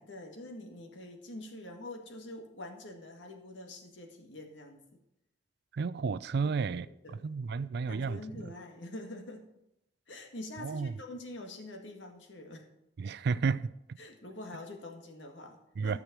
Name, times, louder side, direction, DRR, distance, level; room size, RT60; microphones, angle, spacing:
voice 1, 0.0-4.8 6.4-7.2 7.9-9.5 10.1-12.7 14.0-16.0, left 1 dB, 80° left, 1.9 m, -45 dB
voice 2, 5.7-6.9 7.2-8.5 10.6-10.9 13.0-13.7 15.8-16.0, right 5 dB, 60° right, 0.4 m, -32 dB
12.0 x 6.4 x 6.0 m
head